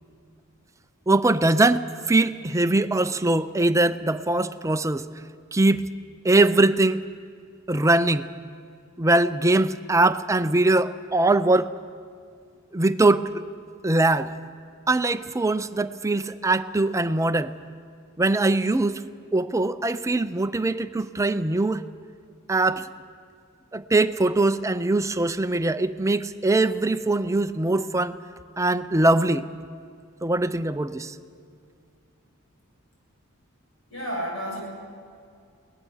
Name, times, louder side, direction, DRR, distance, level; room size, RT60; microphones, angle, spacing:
voice 1, 1.1-5.1 5.5-5.9 6.2-7.0 7.7-8.3 9.0-11.7 12.7-13.4 13.8-14.3 14.9-17.5 18.2-19.0 19.3-21.8 22.5-22.9 23.7-28.2 28.6-29.5 30.2-31.1, right 2 dB, 15° right, 12 dB, 0.5 m, -22 dB
voice 2, 33.9-34.6, equal, 65° left, -2 dB, 7.9 m, -30 dB
22.0 x 19.0 x 7.2 m, 2.3 s
head